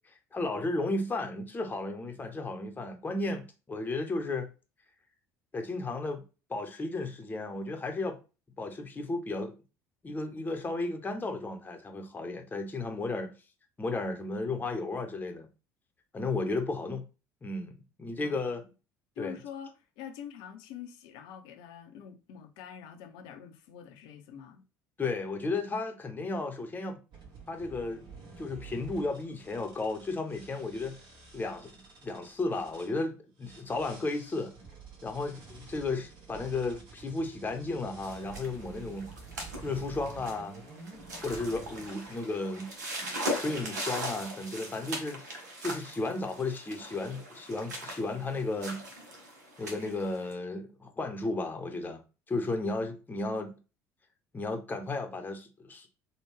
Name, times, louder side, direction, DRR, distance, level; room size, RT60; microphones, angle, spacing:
voice 1, 0.1-4.5 5.5-6.2 6.5-8.2 8.6-9.5 10.0-13.3 13.8-15.5 16.1-17.0 17.4-17.7 18.0-18.6 19.2-19.4 25.0-27.0 27.5-28.1 28.4-31.0 31.3-34.5 35.0-39.1 39.6-40.6 41.2-42.7 43.3-48.8 49.6-52.0 52.3-53.5 54.3-55.9, left 2 dB, 20° left, 0.8 m, -34 dB
voice 2, 18.2-18.7 19.2-24.6, left 8 dB, 60° left, 0.6 m, -46 dB
sound 1, 27.1-32.9 33.4-42.2 42.8-43.1 43.5-43.7, right 4 dB, 55° right, 1.3 m, -50 dB
sound 2, 38.0-50.3, equal, 80° right, 0.8 m, -40 dB
3.4 x 2.2 x 3.2 m
figure-of-eight pair, 60°, 9 cm